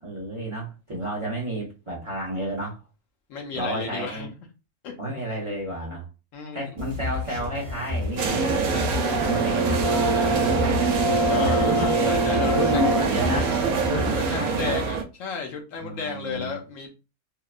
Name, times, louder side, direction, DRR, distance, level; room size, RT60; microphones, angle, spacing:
voice 1, 0.0-2.8 3.5-4.3 5.0-6.0 6.5-8.9 9.1-9.9 10.3-10.7 11.3-11.9 12.5-13.6 13.8-14.8 15.8-16.6, right 1 dB, 50° right, -4 dB, 0.3 m, -31 dB
voice 2, 3.3-4.3 4.8-4.9 6.3-6.6 11.3-12.8 13.9-17.0, left 5 dB, 70° left, 2 dB, 0.9 m, -34 dB
sound 1, 6.8-13.9, left 2 dB, 30° right, 0.7 m, -33 dB
sound 2, 8.2-15.0, right 4 dB, 80° right, 1.0 m, -25 dB
Brass instrument, 9.0-13.2, right 1 dB, 35° left, 0.4 m, -25 dB
2.8 x 2.1 x 2.3 m, 0.30 s
omnidirectional pair, 1.5 m